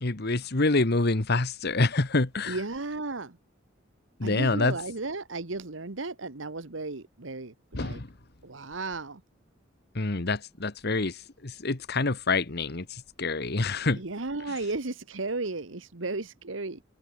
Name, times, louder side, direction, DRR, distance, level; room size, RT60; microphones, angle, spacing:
voice 1, 0.0-2.6 4.2-4.8 7.7-8.1 9.9-14.0, left 3 dB, 55° left, 1.4 m, -27 dB
voice 2, 2.5-3.4 4.2-8.0 8.4-9.2 13.9-16.8, right 3 dB, 75° right, 1.5 m, -34 dB
head